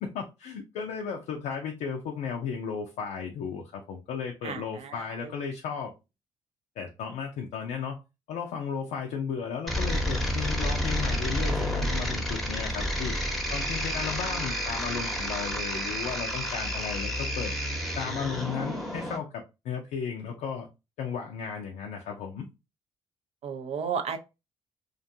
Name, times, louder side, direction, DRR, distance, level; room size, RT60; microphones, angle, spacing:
voice 1, 0.0-5.9 6.8-8.0 8.3-13.2 13.5-17.5 17.9-20.7 21.0-22.5, left 6 dB, 70° left, 0.5 m, -35 dB
voice 2, 4.4-5.3 23.4-24.2, right 6 dB, 55° right, 0.5 m, -33 dB
sound 1, 9.7-19.2, equal, ahead, 0.9 m, -30 dB
2.5 x 2.2 x 2.6 m
hypercardioid pair, 50°, 13 cm